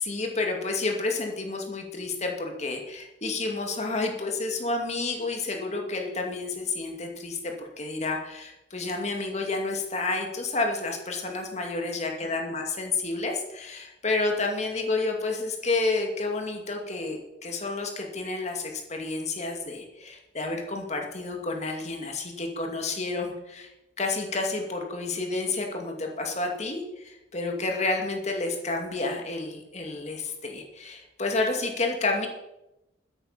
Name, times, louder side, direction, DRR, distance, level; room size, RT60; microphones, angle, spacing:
voice 1, 0.0-23.7 24.0-32.3, left 3 dB, 35° left, 2 dB, 2.4 m, -30 dB
13.0 x 10.5 x 5.8 m, 0.93 s
head